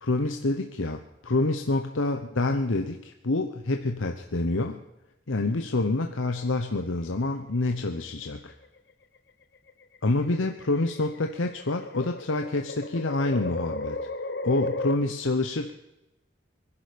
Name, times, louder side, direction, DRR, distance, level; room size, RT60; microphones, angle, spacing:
voice 1, 0.0-4.8 5.3-8.5 10.0-14.0 14.4-15.7, left 2 dB, 85° left, 5 dB, 1.0 m, -27 dB
sound 1, 6.3-7.2 8.4-8.8 9.7-14.9, left 2 dB, 55° left, 0.9 m, -35 dB
24.5 x 11.0 x 5.2 m, 0.92 s
head